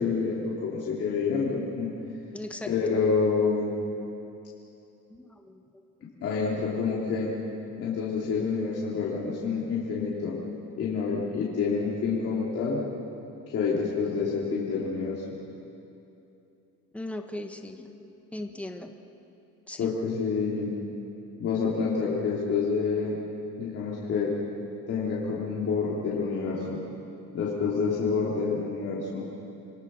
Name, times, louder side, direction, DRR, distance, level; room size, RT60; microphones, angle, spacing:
voice 1, 0.0-1.9 2.7-3.7 6.2-7.3 7.8-10.3 10.8-12.8 13.5-15.4 19.8-20.7 21.4-23.2 23.6-24.3 24.9-26.8 27.3-29.3, left 5 dB, 50° left, -6 dB, 3.2 m, -28 dB
voice 2, 2.3-2.7 5.1-5.6 16.9-18.9 19.7-19.9, left 1 dB, 5° left, 5 dB, 1.1 m, -38 dB
27.5 x 21.0 x 6.3 m, 2.8 s
cardioid pair, 150°, 31 cm